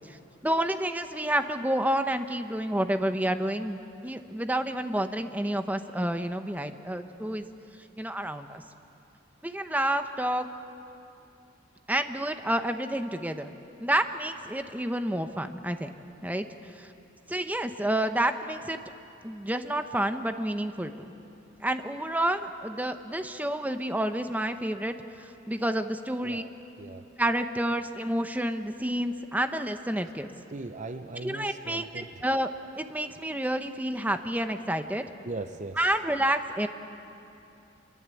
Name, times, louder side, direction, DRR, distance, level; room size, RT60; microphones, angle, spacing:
voice 1, 0.4-7.5 8.0-8.6 9.4-10.5 11.9-15.9 16.2-16.5 16.7-16.9 17.3-18.8 19.2-20.9 21.6-26.4 27.2-30.3 31.2-32.5 32.8-35.0 35.8-36.7, right 1 dB, 10° right, 8 dB, 1.0 m, -29 dB
voice 2, 30.5-32.2 35.2-35.8, right 2 dB, 40° right, 8 dB, 0.7 m, -38 dB
27.5 x 23.5 x 8.5 m, 2.8 s
head